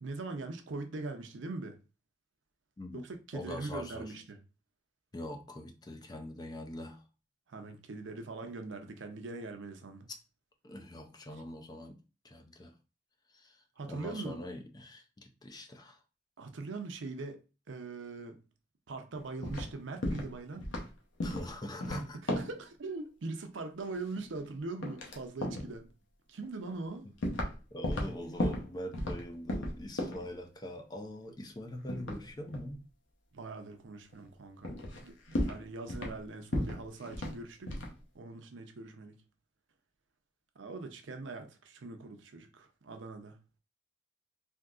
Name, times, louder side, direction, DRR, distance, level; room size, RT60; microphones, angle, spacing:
voice 1, 0.0-1.8 2.9-4.4 7.5-10.1 13.8-14.4 16.4-17.4 17.7-18.4 18.9-20.7 22.2-25.9 26.3-27.1 33.3-34.7 35.0-37.8 38.1-39.2 40.6-43.4, right 3 dB, 75° right, 0.6 m, -41 dB
voice 2, 3.3-4.2 5.1-7.0 10.6-12.0 12.2-12.7 13.3-16.0 21.2-22.2 27.7-32.8, left 1 dB, 20° left, 0.4 m, -43 dB
sound 1, 19.1-19.7 20.0-20.3 20.6-20.9 21.2-21.5 21.8-22.6 23.8-24.5 24.8-25.2 25.4-25.7 26.4-26.5 27.2-27.5 27.8-29.2 29.5-30.3 31.9-32.7 34.1-34.2 34.6-35.0 35.3-36.2 36.5-37.4 37.7-37.9, left 1 dB, 80° left, 0.8 m, -35 dB
3.5 x 2.7 x 2.4 m
head